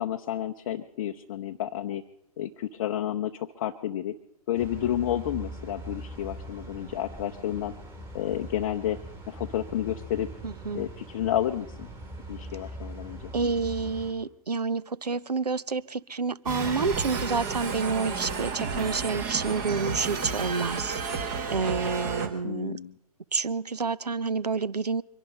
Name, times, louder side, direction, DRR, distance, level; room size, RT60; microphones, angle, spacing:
voice 1, 0.0-2.0 2.4-4.1 4.5-7.7 8.1-9.0 9.3-10.3 10.7-11.9 12.3-13.3 22.4-22.9, left 11 dB, 35° left, 4 dB, 0.6 m, -31 dB
sound 1, 4.5-14.1, right 1 dB, 10° right, 2.7 m, -42 dB
voice 2, 10.4-10.9 13.3-21.0 21.5-22.8 23.3-25.0, right 4 dB, 80° right, 20 dB, 0.6 m, -29 dB
sound 2, 16.5-22.3, right 5 dB, 30° right, 1.8 m, -31 dB
24.0 x 11.5 x 5.3 m, 0.77 s
figure-of-eight pair, 130°, 20 cm